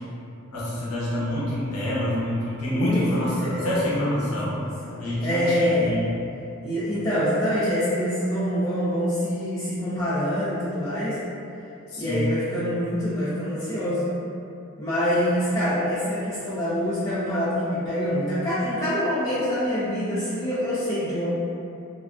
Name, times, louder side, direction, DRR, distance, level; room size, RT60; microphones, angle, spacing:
voice 1, 0.5-4.5 5.0-6.1 11.9-12.3, left 1 dB, 85° left, -7 dB, 0.6 m, -27 dB
voice 2, 2.7-5.9 6.6-11.2 12.0-14.1 14.8-21.3, equal, 15° left, -13 dB, 0.5 m, -25 dB
2.4 x 2.2 x 2.3 m, 2.5 s
head